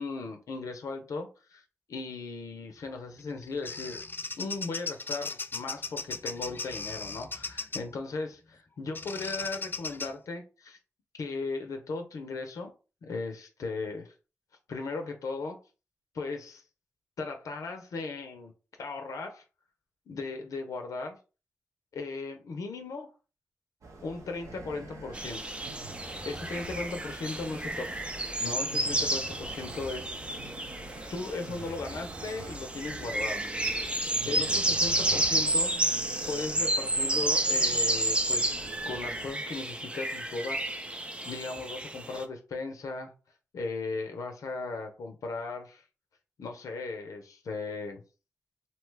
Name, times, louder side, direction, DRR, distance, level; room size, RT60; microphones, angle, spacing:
voice 1, 0.0-1.6 1.9-4.0 4.4-10.8 11.2-12.7 13.0-14.1 14.7-15.6 16.1-16.6 17.2-18.5 18.8-19.4 20.1-21.2 21.9-23.1 24.0-25.6 26.2-28.1 28.4-30.1 31.1-33.4 34.0-35.9 36.3-38.5 38.9-40.7 41.0-43.1 43.5-45.8 46.4-48.0, left 3 dB, 90° left, 4 dB, 0.5 m, -37 dB
Bird vocalization bird call bird song, 3.2-7.9 8.9-10.1, left 3 dB, 40° left, 0.3 m, -37 dB
sound 1, 23.8-39.3, right 2 dB, 75° right, 0.8 m, -45 dB
sound 2, 25.1-42.2, right 1 dB, 20° right, 0.5 m, -31 dB
2.7 x 2.2 x 3.2 m, 0.33 s
cardioid pair, 50°, 6 cm